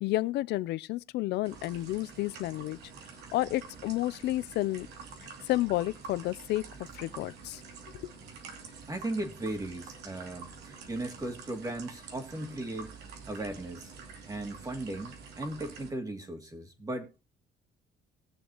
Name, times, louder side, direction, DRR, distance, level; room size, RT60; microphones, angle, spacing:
voice 1, 0.0-2.8 3.3-4.9 5.5-6.6 6.9-7.6 8.0-8.1, left 16 dB, 80° left, 0.6 m, -31 dB
sound 1, 1.4-15.9, right 5 dB, 80° right, 2.8 m, -47 dB
voice 2, 8.9-12.9 13.3-13.9 14.3-17.2, right 1 dB, 20° right, 2.6 m, -37 dB
20.5 x 7.1 x 3.0 m
cardioid pair, 110°, 17 cm